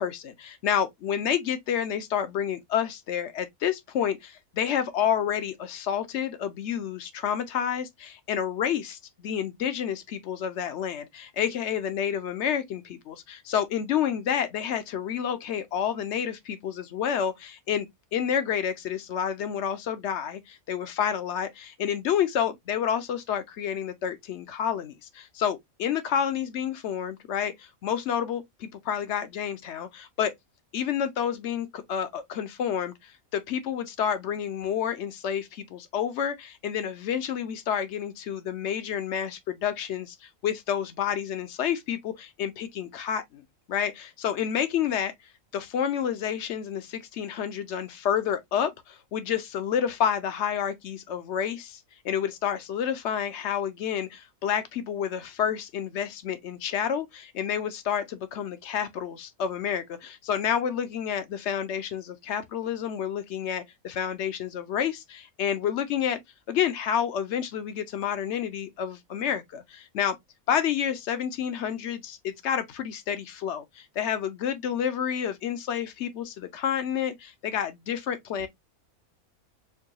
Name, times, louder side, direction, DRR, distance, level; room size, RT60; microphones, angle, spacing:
voice 1, 0.0-30.3 30.7-40.1 40.4-43.4 43.7-45.1 45.5-66.2 66.5-70.2 70.5-78.5, left 8 dB, 60° left, 0.8 m, -29 dB
4.5 x 2.3 x 2.8 m
omnidirectional pair, 1.5 m